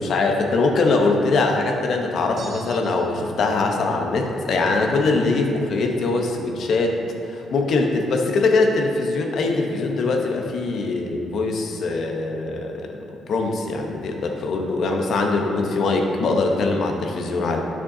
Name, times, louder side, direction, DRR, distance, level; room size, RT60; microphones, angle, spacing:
voice 1, 0.0-7.0 7.2-13.0 13.3-17.6, left 3 dB, 65° left, 2 dB, 0.9 m, -22 dB
sound 1, 2.4-3.3, right 3 dB, 45° right, 1.2 m, -44 dB
9.7 x 6.1 x 2.8 m, 2.8 s
cardioid pair, 90°, 0 cm